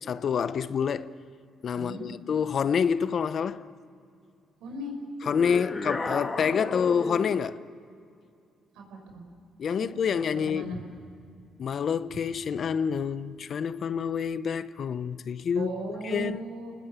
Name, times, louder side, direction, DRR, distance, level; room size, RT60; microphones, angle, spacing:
voice 1, 0.1-1.1 1.6-3.7 5.3-7.6 9.6-10.7 11.6-15.7 16.0-16.4, left 7 dB, 55° left, 0.8 m, -27 dB
voice 2, 1.7-2.1 4.6-4.9 8.7-9.2 9.8-10.8 15.5-16.7, right 2 dB, 90° right, 6.0 m, -37 dB
sound 1, 5.2-7.5, left 3 dB, 30° left, 2.4 m, -34 dB
30.0 x 20.0 x 8.2 m
cardioid pair, 90°, 0 cm